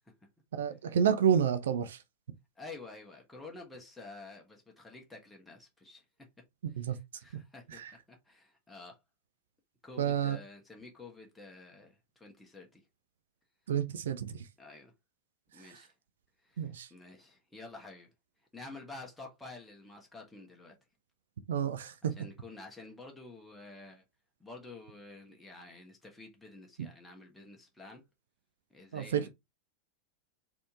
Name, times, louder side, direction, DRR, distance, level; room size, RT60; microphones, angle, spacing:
voice 1, 0.5-2.0 6.8-7.0 7.7-7.9 10.0-10.4 13.7-14.5 15.6-15.8 16.6-16.9 21.5-22.1 28.9-29.3, right 8 dB, 60° right, 0.6 m, -30 dB
voice 2, 2.6-6.0 6.9-7.8 8.1-9.0 9.8-12.8 14.6-14.9 15.5-15.9 16.4-18.1 18.5-20.7 22.2-24.0 24.4-28.0 28.7-29.3, left 3 dB, 5° left, 1.2 m, -50 dB
4.2 x 3.0 x 3.5 m
figure-of-eight pair, 90°, 0 cm